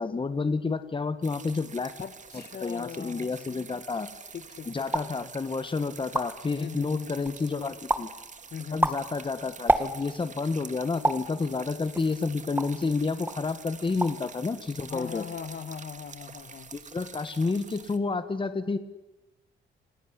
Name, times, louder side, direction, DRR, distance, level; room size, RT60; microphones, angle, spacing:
voice 1, 0.0-1.9 2.6-4.1 4.7-8.1 8.7-15.2 16.7-18.8, left 4 dB, 25° left, 11 dB, 1.6 m, -30 dB
sound 1, 1.2-18.0, right 5 dB, 40° right, 2.1 m, -47 dB
voice 2, 2.0-3.6 4.3-5.3 6.6-7.3 8.5-8.8 14.9-16.7, left 7 dB, 55° left, 12 dB, 2.0 m, -40 dB
sound 2, 4.9-5.2 5.7-5.8 6.0-6.5 7.0-7.5 7.9-8.2 8.6-10.3 11.0-11.3 11.9-12.9 13.3-13.5 13.8-14.3 14.5-15.0, right 1 dB, 10° right, 2.0 m, -28 dB
28.0 x 18.0 x 9.9 m, 1.1 s
cardioid pair, 90°, 20 cm